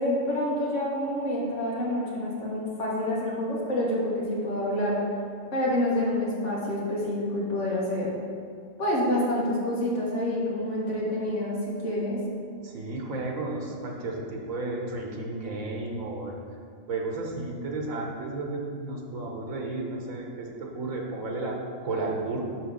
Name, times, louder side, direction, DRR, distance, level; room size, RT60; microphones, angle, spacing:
voice 1, 0.0-5.0 5.5-8.1 8.8-12.2, left 1 dB, 65° left, -6 dB, 2.0 m, -27 dB
voice 2, 12.6-16.4 16.9-22.4, right 2 dB, 85° right, 0 dB, 1.4 m, -33 dB
6.1 x 4.6 x 6.4 m, 2.2 s
omnidirectional pair, 1.4 m